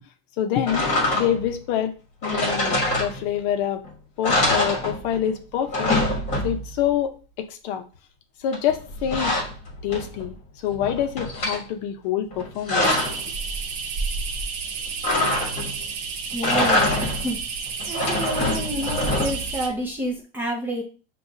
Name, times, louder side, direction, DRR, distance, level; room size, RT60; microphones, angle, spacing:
voice 1, 0.4-1.9 2.2-3.8 4.2-5.9 6.4-7.8 8.4-9.4 9.8-12.9, left 9 dB, 50° left, 7 dB, 0.6 m, -26 dB
sound 1, 0.7-1.5 2.2-3.5 3.8-3.9 4.2-5.3 5.6-6.8 8.5-10.3 10.7-11.6 12.3-13.3 15.0-15.8 16.3-17.3 17.8-19.6, left 1 dB, 25° left, 1.2 m, -24 dB
sound 2, 12.8-19.7, right 5 dB, 50° right, 0.8 m, -31 dB
voice 2, 16.3-17.4 17.9-20.8, right 1 dB, 5° right, -2 dB, 0.4 m, -29 dB
6.2 x 2.3 x 2.7 m, 0.35 s
supercardioid pair, 155°, 29 cm